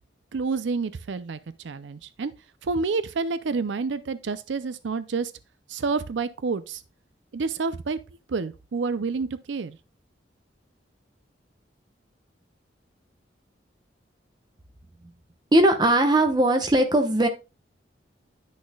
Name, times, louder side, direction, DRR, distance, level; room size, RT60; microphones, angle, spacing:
voice 1, 0.3-1.4 1.6-2.3 2.6-5.3 5.7-6.8 7.3-8.0 8.3-9.8, right 4 dB, 80° right, 0.5 m, -28 dB
voice 2, 15.5-17.3, right 1 dB, 20° right, 0.9 m, -19 dB
10.5 x 6.3 x 2.3 m
head